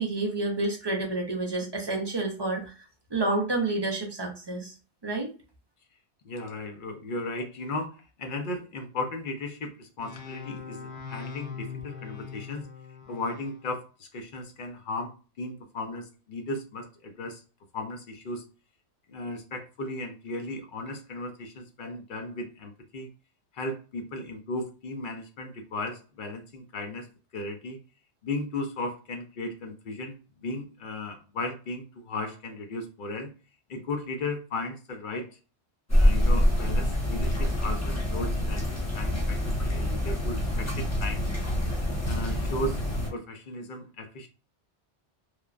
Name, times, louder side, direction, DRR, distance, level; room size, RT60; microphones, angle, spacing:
voice 1, 0.0-2.8 3.1-4.7 5.0-5.3, right 2 dB, 35° right, 1 dB, 0.4 m, -29 dB
voice 2, 6.2-12.6 13.1-17.4 17.7-18.4 19.1-23.1 23.5-27.1 27.3-27.8 28.2-33.3 33.7-35.3 35.9-41.3 42.0-42.8 43.1-44.3, left 2 dB, 55° left, 5 dB, 0.6 m, -36 dB
sound 1, 10.0-13.6, left 6 dB, 75° left, 1.0 m, -41 dB
sound 2, 35.9-43.1, left 1 dB, 15° left, 0.7 m, -26 dB
3.1 x 2.1 x 2.4 m, 0.34 s
omnidirectional pair, 1.2 m